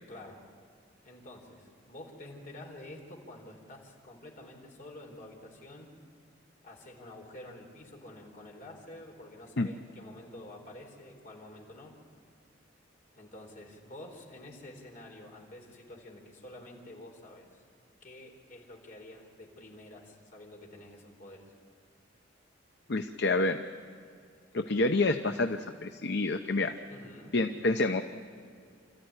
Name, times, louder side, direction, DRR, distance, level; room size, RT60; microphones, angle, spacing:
voice 1, 0.1-0.4 1.0-5.9 6.6-11.9 13.1-17.6 18.0-21.5 26.9-27.4, left 1 dB, 45° left, 0 dB, 4.2 m, -49 dB
voice 2, 22.9-23.6 24.5-26.7 27.3-28.0, left 2 dB, 60° left, 7 dB, 0.8 m, -28 dB
27.5 x 14.5 x 9.8 m, 2.4 s
head